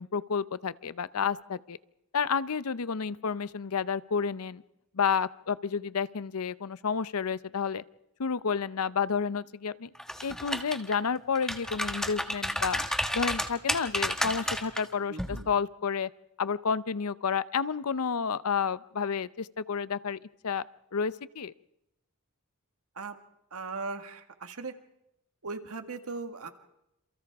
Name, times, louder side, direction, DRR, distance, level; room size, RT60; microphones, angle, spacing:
voice 1, 0.0-1.8 2.1-4.6 5.0-7.8 8.2-9.9 10.2-12.8 13.1-16.1 16.4-20.2 20.4-20.6 20.9-21.5, left 6 dB, 80° left, 16 dB, 0.7 m, -30 dB
sound 1, 10.0-11.0 11.4-14.8 15.2-15.4, equal, 5° left, 1.4 m, -31 dB
voice 2, 15.1-15.5 22.9-23.2 23.5-24.7 25.4-26.5, right 4 dB, 80° right, 7 dB, 1.8 m, -38 dB
28.0 x 28.0 x 3.6 m, 0.86 s
head